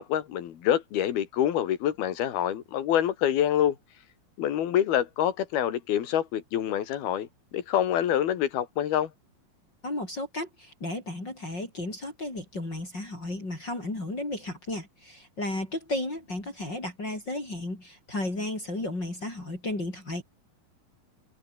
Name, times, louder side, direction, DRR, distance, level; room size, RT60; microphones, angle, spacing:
voice 1, 0.0-3.8 4.4-9.1, left 10 dB, 85° left, 3.9 m, -26 dB
voice 2, 9.8-20.2, left 2 dB, 25° left, 7.2 m, -34 dB
omnidirectional pair, 4.3 m